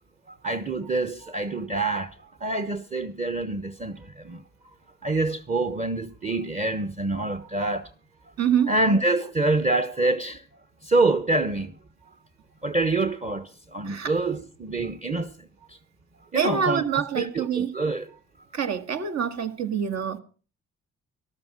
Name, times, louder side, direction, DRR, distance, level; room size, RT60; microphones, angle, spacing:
voice 1, 0.3-2.1 2.4-4.4 5.0-7.9 8.7-10.4 10.8-11.7 12.6-15.8 16.3-18.1, right 2 dB, 25° right, 1.1 m, -26 dB
voice 2, 8.4-8.7 13.8-14.1 16.4-17.7 18.5-20.2, right 7 dB, 60° right, 1.8 m, -26 dB
13.0 x 12.5 x 6.1 m
cardioid pair, 90°, 30 cm